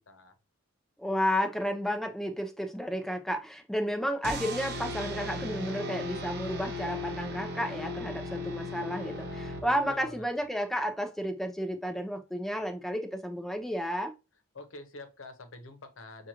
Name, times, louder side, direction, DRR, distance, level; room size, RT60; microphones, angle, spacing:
voice 1, 1.0-14.1, equal, ahead, 0.5 m, -32 dB
sound 1, 4.2-10.1, left 1 dB, 55° right, 0.9 m, -37 dB
voice 2, 9.5-10.2 14.5-16.3, left 2 dB, 80° left, 0.9 m, -46 dB
6.1 x 2.4 x 2.9 m
head